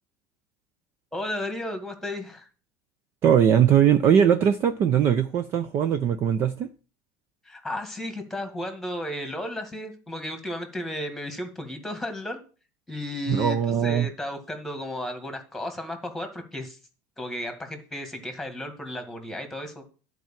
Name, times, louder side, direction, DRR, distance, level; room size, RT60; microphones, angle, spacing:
voice 1, 1.1-2.5 7.5-12.4 12.9-16.8 17.2-19.8, left 1 dB, 5° left, 1.7 m, -34 dB
voice 2, 3.2-6.7 13.3-14.1, right 9 dB, 30° right, 0.5 m, -20 dB
12.0 x 4.6 x 7.3 m
cardioid pair, 170°, 8 cm